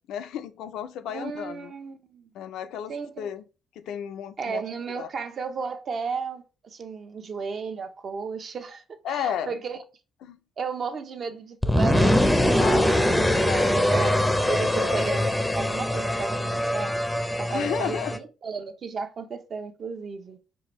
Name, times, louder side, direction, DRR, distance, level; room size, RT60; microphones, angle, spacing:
voice 1, 0.1-1.7 2.3-3.4 3.8-4.6 4.9-5.1 9.0-9.6 10.2-10.4 12.6-13.8 14.7-15.0 17.5-18.1, left 9 dB, 85° left, 0.3 m, -33 dB
voice 2, 1.1-2.3 2.9-3.3 4.4-9.8 10.6-14.2 14.5-17.0 17.4-20.4, right 5 dB, 50° right, 0.6 m, -34 dB
sound 1, 11.6-18.2, left 1 dB, 5° left, 0.4 m, -23 dB
4.7 x 2.6 x 2.9 m
cardioid pair, 90°, 0 cm